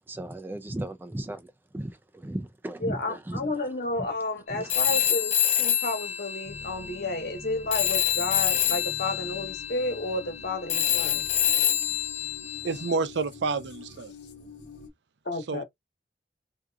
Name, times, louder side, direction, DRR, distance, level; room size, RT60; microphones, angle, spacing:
voice 1, 0.1-3.5 4.5-4.8, right 1 dB, 10° right, 0.3 m, -36 dB
voice 2, 2.8-11.2 15.2-15.6, left 2 dB, 60° left, 1.3 m, -31 dB
Telephone, 4.7-7.4 7.7-13.0, left 10 dB, 40° left, 0.6 m, -27 dB
sound 1, 6.4-14.9, left 3 dB, 85° left, 1.1 m, -46 dB
voice 3, 12.6-14.1 15.5-15.6, right 4 dB, 90° right, 0.5 m, -29 dB
3.6 x 2.7 x 2.3 m
head